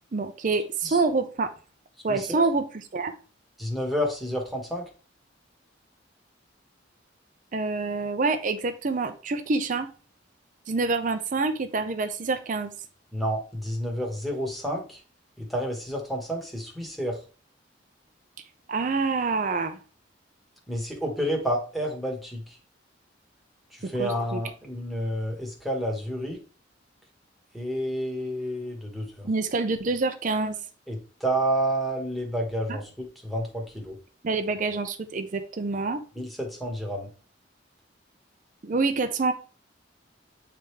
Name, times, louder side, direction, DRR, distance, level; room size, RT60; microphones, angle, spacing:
voice 1, 0.1-1.5 2.0-3.2 7.5-9.9 10.7-12.7 18.7-19.8 23.8-24.4 29.2-30.6 32.7-32.8 34.2-36.0 38.6-39.3, right 3 dB, 45° right, 0.5 m, -27 dB
voice 2, 2.1-2.4 3.6-4.8 13.1-15.0 15.4-17.2 20.7-22.6 23.7-26.4 27.5-29.3 30.9-34.0 36.1-37.1, equal, ahead, 1.4 m, -30 dB
8.6 x 3.4 x 3.2 m
head